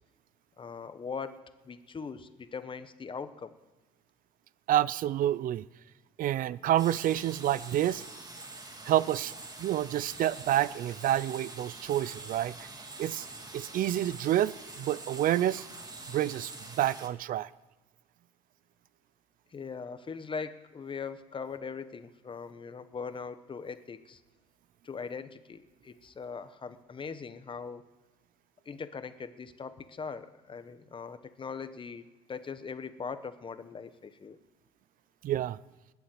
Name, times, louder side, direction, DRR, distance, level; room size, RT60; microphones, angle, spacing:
voice 1, 0.6-1.4 1.6-3.5 19.5-24.2 24.8-27.8 28.7-32.0 32.3-34.4, left 5 dB, 30° left, 11 dB, 1.0 m, -40 dB
voice 2, 4.7-5.6 6.2-8.0 8.9-9.3 9.6-12.5 13.0-13.3 13.5-15.7 16.1-16.5 16.8-17.5 35.2-35.6, right 12 dB, 55° right, 20 dB, 0.5 m, -28 dB
sound 1, 6.8-17.1, right 2 dB, 25° right, 1.9 m, -45 dB
20.0 x 7.1 x 7.9 m, 1.2 s
supercardioid pair, 90°, 17 cm